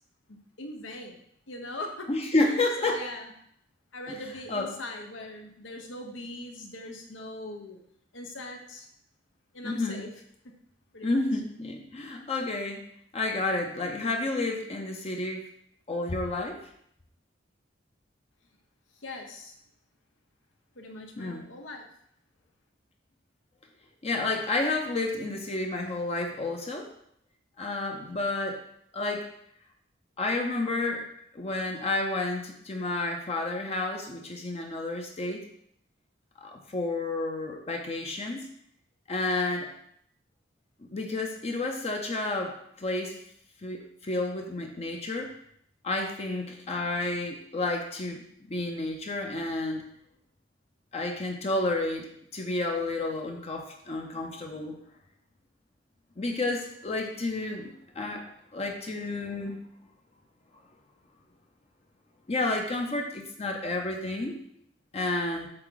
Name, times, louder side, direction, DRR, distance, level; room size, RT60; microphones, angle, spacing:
voice 1, 0.3-1.2 1.5-2.1 2.4-3.3 3.9-7.8 8.1-8.9 9.5-10.1 10.4-10.5 10.9-11.2 19.0-19.5 20.8-21.9, left 1 dB, 80° left, 3 dB, 1.0 m, -41 dB
voice 2, 2.1-3.0 4.5-4.7 9.6-10.0 11.0-12.8 13.1-15.5 15.9-16.6 21.2-21.5 24.0-26.9 27.6-28.6 28.9-29.3 30.2-31.1 31.3-35.4 36.4-38.5 39.1-39.7 40.9-43.2 43.6-45.3 45.8-48.2 48.5-49.8 50.9-54.8 56.2-59.6 62.3-64.4 64.9-65.5, left 2 dB, 35° left, 2 dB, 0.7 m, -30 dB
7.7 x 3.6 x 3.9 m, 0.71 s
head